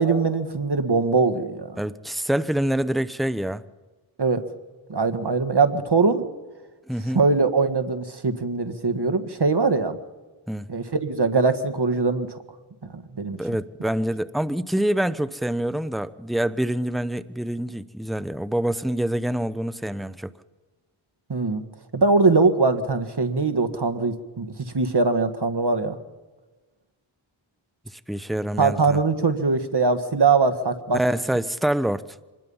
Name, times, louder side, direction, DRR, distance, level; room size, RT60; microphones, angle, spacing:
voice 1, 0.0-1.8 4.2-4.4 4.9-6.3 7.1-10.0 10.7-12.4 12.9-13.4 21.3-21.6 21.9-24.5 24.7-26.0 28.6-31.0, right 4 dB, 50° right, 1.8 m, -22 dB
voice 2, 1.8-3.6 6.9-7.2 10.5-10.6 13.4-20.3 27.9-29.0 30.9-32.0, right 1 dB, ahead, 0.8 m, -26 dB
25.0 x 20.0 x 5.6 m
wide cardioid pair, 45°, 49 cm